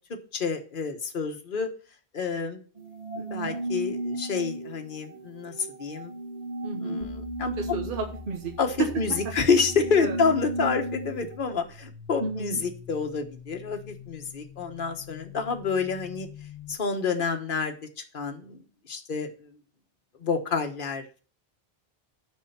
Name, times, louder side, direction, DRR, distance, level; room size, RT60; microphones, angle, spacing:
voice 1, 0.3-1.7 2.1-2.6 3.2-6.1 6.8-7.5 8.6-16.3 16.7-18.6 18.9-19.5 20.2-21.2, left 5 dB, 55° left, 5 dB, 1.3 m, -28 dB
Calm and Cold Space, 2.8-11.4, right 1 dB, 40° right, 0.9 m, -35 dB
voice 2, 6.6-7.1 7.6-8.5 8.8-8.9 10.0-10.2 12.2-12.6, right 4 dB, 60° right, 2 dB, 1.2 m, -31 dB
sound 1, 7.0-16.8, left 5 dB, 5° right, 2.6 m, -44 dB
10.0 x 4.4 x 5.6 m, 0.38 s
omnidirectional pair, 1.0 m